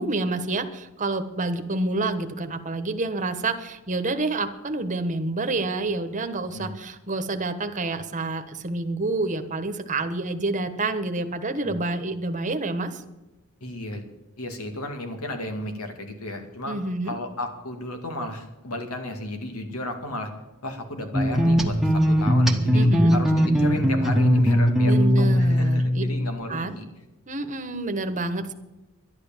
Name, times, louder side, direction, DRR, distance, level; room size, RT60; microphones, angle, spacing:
voice 1, 0.0-13.0 16.6-17.1 22.7-23.1 24.8-26.0 26.5-26.7 27.3-28.5, right 2 dB, 35° right, 8 dB, 1.2 m, -28 dB
voice 2, 13.6-14.0 14.4-16.8 17.0-20.3 20.6-26.8, left 1 dB, 90° left, 5 dB, 2.2 m, -34 dB
sound 1, 21.1-26.3, equal, ahead, 1.2 m, -20 dB
11.5 x 11.5 x 7.2 m, 1.0 s
head